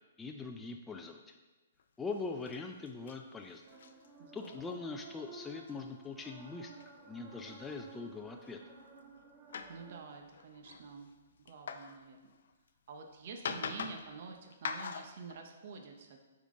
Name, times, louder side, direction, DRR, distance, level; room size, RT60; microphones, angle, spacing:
voice 1, 0.2-1.4 2.0-3.6 4.3-8.6, left 4 dB, 10° left, 2 dB, 0.4 m, -42 dB
sound 1, 1.8-1.9 2.1-2.6 2.9-3.2 3.4-4.1 4.4-4.6 5.5-5.8 6.8-6.9 7.4-8.0 8.4-8.5 9.0-9.2 9.5-12.7 13.3-14.1 14.5-15.3, left 6 dB, 70° left, 0.5 m, -43 dB
sound 2, 3.6-10.0, right 3 dB, 30° right, 1.0 m, -54 dB
voice 2, 4.2-4.8 9.7-11.1 11.4-12.3 12.9-16.2, right 5 dB, 55° right, 3 dB, 0.7 m, -48 dB
9.1 x 3.7 x 3.7 m, 1.2 s
hypercardioid pair, 145°, 0 cm